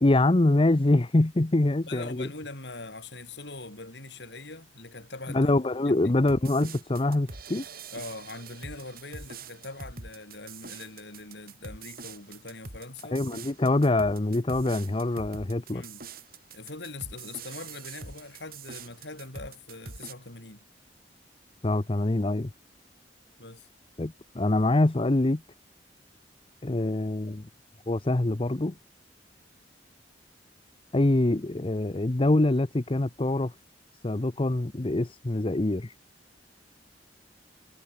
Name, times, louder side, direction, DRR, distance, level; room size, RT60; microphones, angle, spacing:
voice 1, 0.0-2.3 5.3-7.6 13.1-15.8 21.6-22.5 24.0-25.4 26.6-27.4 27.9-28.7 30.9-33.5 34.0-35.9, left 2 dB, 30° left, 0.7 m, -24 dB
voice 2, 1.9-5.5 5.8-6.0 7.9-13.2 15.7-16.0 16.5-20.6 23.4-23.7, left 3 dB, 70° left, 5.7 m, -42 dB
sound 1, 6.3-20.1, right 4 dB, 55° right, 4.6 m, -44 dB
head